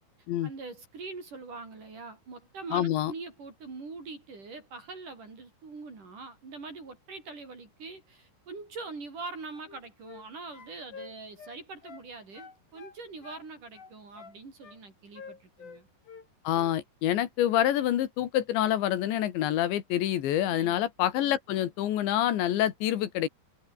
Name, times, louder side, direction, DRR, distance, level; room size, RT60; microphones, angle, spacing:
voice 1, 0.4-15.9 20.5-20.8, right 3 dB, 45° right, 7.0 m, -43 dB
voice 2, 2.7-3.1 16.5-23.3, left 12 dB, 75° left, 4.1 m, -27 dB
sound 1, 9.5-10.3 10.5-12.1 12.3-13.5 13.7-14.8 15.1-16.3 16.5-16.8, left 6 dB, 50° left, 6.2 m, -48 dB
omnidirectional pair, 5.3 m